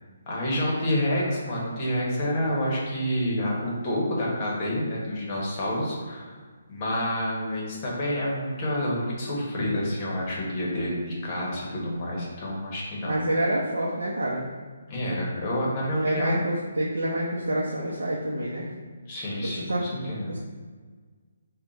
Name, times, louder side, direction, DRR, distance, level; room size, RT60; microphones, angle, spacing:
voice 1, 0.3-6.4 6.7-13.2 14.9-16.4 19.1-20.4, equal, 35° left, -4 dB, 1.1 m, -28 dB
voice 2, 13.0-14.5 15.9-18.7 19.4-19.8 20.2-20.4, right 1 dB, 80° right, -5 dB, 0.6 m, -27 dB
3.5 x 2.2 x 3.9 m, 1.5 s
figure-of-eight pair, 145°, 0 cm